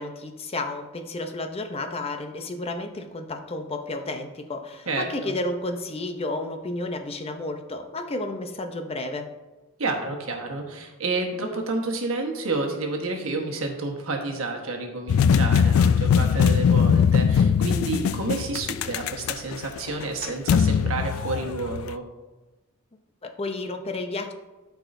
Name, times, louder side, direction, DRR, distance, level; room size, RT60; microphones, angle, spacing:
voice 1, 0.0-9.3 23.2-24.3, left 2 dB, 30° left, 6 dB, 0.5 m, -32 dB
voice 2, 4.9-5.3 9.8-22.0, right 3 dB, 80° right, 2 dB, 1.2 m, -30 dB
sound 1, 15.1-21.9, left 7 dB, 80° left, 0.3 m, -21 dB
12.5 x 4.8 x 2.6 m, 1.2 s
head